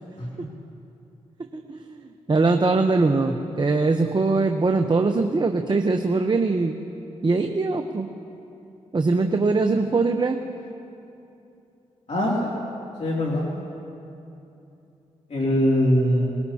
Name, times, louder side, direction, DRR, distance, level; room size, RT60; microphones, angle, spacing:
voice 1, 1.5-6.8 7.2-8.1 8.9-10.4, right 3 dB, 35° right, 5 dB, 0.9 m, -22 dB
voice 2, 12.1-12.5 13.0-13.5 15.3-16.4, equal, 55° left, -5 dB, 2.9 m, -22 dB
21.5 x 20.0 x 2.9 m, 2.8 s
supercardioid pair, 50°, 13 cm